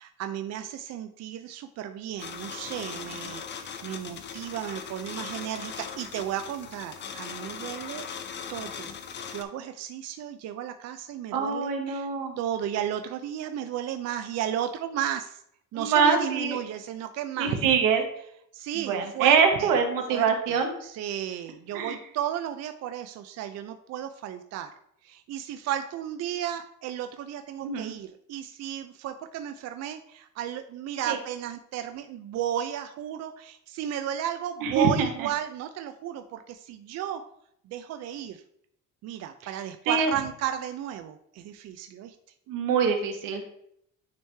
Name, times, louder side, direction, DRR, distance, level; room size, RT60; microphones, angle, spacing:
voice 1, 0.0-8.1 8.5-9.0 9.3-12.1 12.4-15.4 15.7-17.6 18.5-19.8 20.1-24.7 25.0-37.2 37.7-38.4 39.0-42.2, right 10 dB, 55° right, 8 dB, 0.4 m, -34 dB
sound 1, 2.2-9.4, left 7 dB, 35° left, 0.5 m, -39 dB
voice 2, 11.3-12.4 15.7-16.6 17.4-18.0 18.7-20.7 21.7-22.0 27.6-27.9 31.1-31.2 34.6-35.3 39.9-40.1 42.5-43.5, right 6 dB, 90° right, 5 dB, 1.2 m, -24 dB
9.4 x 3.1 x 3.3 m, 0.72 s
cardioid pair, 140°, 32 cm